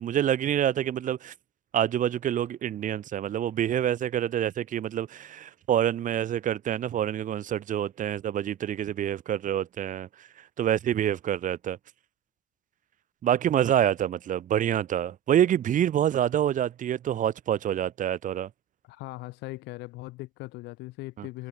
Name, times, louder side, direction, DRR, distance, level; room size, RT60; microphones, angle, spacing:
voice 1, 0.0-1.3 1.7-10.3 10.6-11.8 13.2-18.5 21.2-21.3, right 10 dB, 50° right, 1.0 m, -27 dB
voice 2, 18.8-21.5, left 20 dB, 90° left, 1.6 m, -39 dB
cardioid pair, 110°, 17 cm